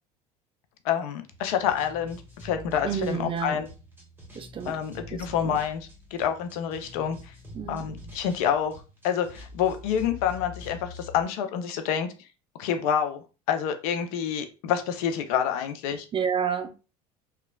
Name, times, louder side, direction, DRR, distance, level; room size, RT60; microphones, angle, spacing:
voice 1, 0.8-3.7 4.7-7.2 7.7-8.7 9.0-12.1 12.6-13.2 13.5-16.1, left 8 dB, 70° left, 0.5 m, -27 dB
sound 1, 1.3-11.2, left 2 dB, 10° right, 1.3 m, -45 dB
voice 2, 2.8-3.6 4.3-4.8 5.1-5.6 7.5-7.8 16.1-16.8, right 7 dB, 25° right, 0.4 m, -30 dB
3.0 x 2.3 x 2.2 m
hypercardioid pair, 75°, 20 cm